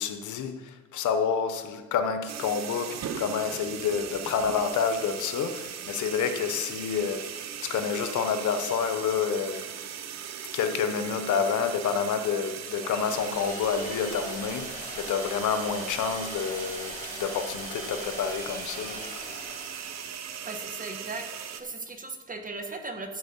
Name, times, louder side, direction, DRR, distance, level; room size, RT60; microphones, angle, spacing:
voice 1, 0.0-9.7 10.5-19.1, left 6 dB, 75° left, 8 dB, 1.0 m, -29 dB
sound 1, 2.3-21.6, right 8 dB, 60° right, 0.9 m, -39 dB
sound 2, 12.8-20.5, left 2 dB, 25° left, 3.8 m, -41 dB
voice 2, 20.4-21.3 21.6-23.2, right 3 dB, 25° right, 5 dB, 1.4 m, -37 dB
13.0 x 4.6 x 7.2 m, 1.2 s
cardioid pair, 90°, 30 cm